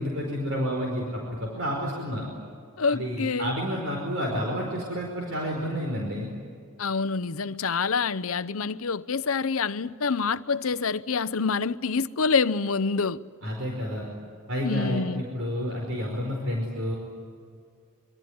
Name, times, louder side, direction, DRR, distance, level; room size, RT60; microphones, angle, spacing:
voice 1, 0.0-2.3 2.9-6.3 13.4-14.1 14.5-16.9, equal, 60° right, 5.0 m, -30 dB
voice 2, 2.8-3.5 6.8-13.2 14.6-15.2, left 5 dB, 75° left, 0.7 m, -26 dB
26.0 x 23.5 x 9.6 m
head